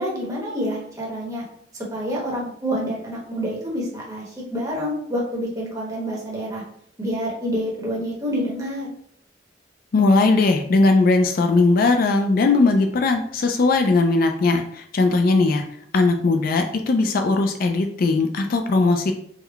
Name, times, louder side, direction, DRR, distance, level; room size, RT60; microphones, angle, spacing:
voice 1, 0.0-1.4 1.9-6.6 7.0-8.9, equal, 20° right, -4 dB, 1.0 m, -27 dB
voice 2, 9.9-15.6 15.9-19.1, left 3 dB, 50° left, 5 dB, 0.3 m, -19 dB
3.6 x 2.1 x 3.4 m, 0.65 s
head